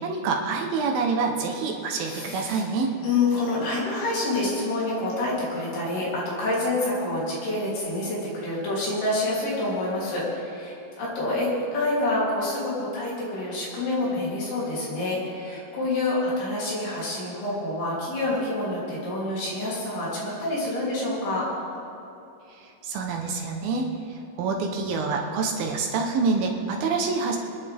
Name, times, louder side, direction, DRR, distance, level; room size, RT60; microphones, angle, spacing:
voice 1, 0.0-2.9 22.6-27.4, right 4 dB, 70° right, 2 dB, 2.7 m, -27 dB
voice 2, 2.0-2.6 3.0-21.5, left 2 dB, 70° left, -6 dB, 5.2 m, -27 dB
25.5 x 10.5 x 3.5 m, 2.8 s
omnidirectional pair, 4.7 m